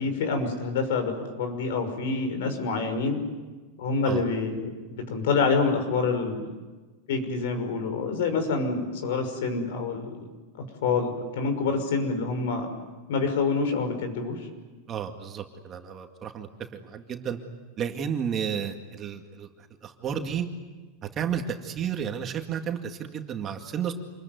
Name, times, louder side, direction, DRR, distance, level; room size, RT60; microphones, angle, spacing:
voice 1, 0.0-3.2 3.8-6.5 7.1-10.1 10.8-12.7 13.1-14.5, left 4 dB, 75° left, 7 dB, 5.9 m, -27 dB
voice 2, 14.9-17.4 17.8-19.5 19.8-20.5 21.2-23.9, right 8 dB, 25° right, 4 dB, 2.1 m, -32 dB
27.5 x 21.5 x 9.4 m, 1.3 s
supercardioid pair, 155°, 0 cm